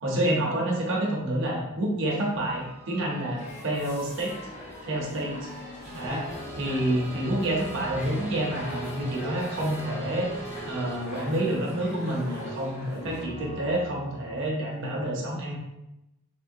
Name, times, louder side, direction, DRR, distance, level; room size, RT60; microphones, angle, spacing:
voice 1, 0.0-4.3 4.8-5.3 5.9-6.2 6.6-10.3 10.6-15.6, right 1 dB, 60° right, -2 dB, 0.7 m, -28 dB
sound 1, 2.1-11.6, equal, 10° left, 0.6 m, -43 dB
sound 2, 3.4-13.2, left 1 dB, 80° left, 1.4 m, -43 dB
sound 3, 4.4-14.5, right 2 dB, 55° left, 0.8 m, -42 dB
3.7 x 2.1 x 2.6 m, 0.91 s
head